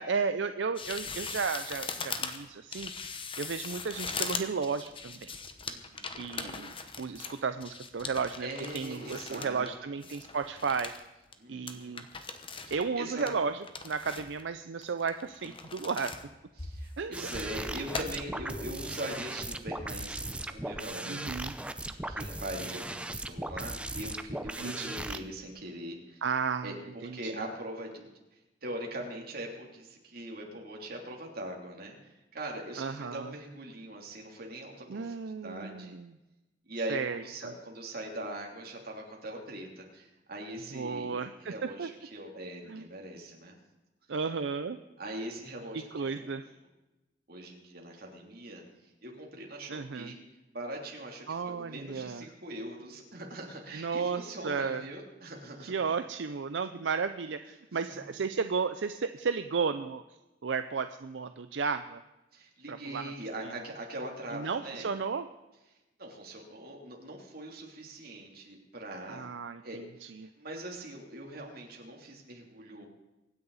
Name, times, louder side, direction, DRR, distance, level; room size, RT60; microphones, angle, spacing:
voice 1, 0.0-2.9 3.4-5.3 6.2-8.5 8.7-10.9 11.5-12.1 12.7-16.1 17.0-17.3 21.1-21.5 24.6-24.9 26.2-26.8 27.0-27.3 32.8-33.3 34.9-36.1 36.9-37.5 40.7-41.9 42.7-42.9 44.1-44.8 45.7-46.4 49.7-50.1 51.3-52.2 53.7-54.8 55.7-60.0 60.4-62.0 62.7-63.1 63.4-63.5 64.3-65.3 69.1-70.3, right 5 dB, 80° right, 10 dB, 0.5 m, -34 dB
sound 1, 0.8-9.7 10.0-11.0 11.3-11.4 11.7-12.8 13.2-14.4 14.8-16.2 16.6-17.5 17.9-18.0, left 5 dB, 30° left, 1.1 m, -40 dB
voice 2, 5.6-6.2 8.4-9.9 11.4-12.0 12.6-13.3 15.4-15.8 16.6-26.2 26.6-28.1 28.6-36.0 36.7-41.1 41.4-43.5 45.0-46.4 47.3-48.6 49.0-50.2 50.5-55.7 62.3-65.0 66.0-69.3 69.6-69.8 70.2-72.9, right 1 dB, 55° right, 0 dB, 3.1 m, -42 dB
sound 2, 17.1-25.2, right 1 dB, 5° right, 0.6 m, -38 dB
24.0 x 9.8 x 4.1 m, 1.0 s
head